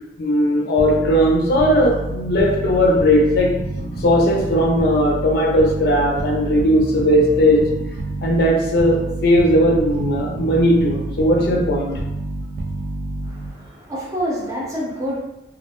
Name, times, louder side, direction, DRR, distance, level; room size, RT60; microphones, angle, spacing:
voice 1, 0.2-3.5 4.0-7.6 8.2-12.0, equal, 60° left, 0 dB, 0.4 m, -17 dB
sound 1, 0.8-13.7, right 2 dB, 50° right, 0.3 m, -28 dB
voice 2, 13.2-15.2, equal, 20° right, -6 dB, 0.7 m, -27 dB
2.3 x 2.1 x 2.8 m, 0.90 s
head